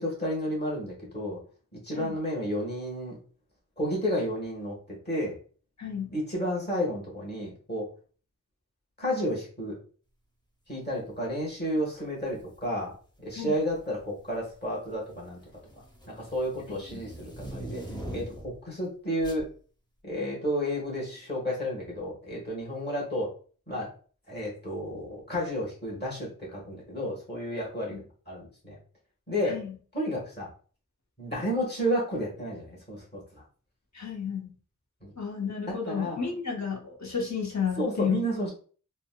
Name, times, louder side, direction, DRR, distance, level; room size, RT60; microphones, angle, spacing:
voice 1, 0.0-1.4 1.7-3.2 3.8-5.4 6.1-7.9 9.0-9.8 10.7-12.9 13.2-15.4 16.1-17.8 18.1-19.5 20.0-23.3 23.7-23.9 24.3-28.8 29.3-29.6 29.9-30.5 31.2-33.4 35.0-35.1 35.9-36.2 37.8-38.5, equal, 30° left, -4 dB, 1.4 m, -31 dB
voice 2, 5.8-6.1 13.3-13.6 16.7-17.0 27.9-28.0 29.4-29.8 33.9-34.5 35.2-38.3, left 6 dB, 55° left, -2 dB, 1.0 m, -32 dB
sound 1, 12.3-12.6 13.5-14.0 14.3-18.6 19.2-19.5, right 1 dB, 15° left, 0.8 m, -42 dB
4.0 x 2.2 x 2.2 m, 0.41 s
wide cardioid pair, 45°, 32 cm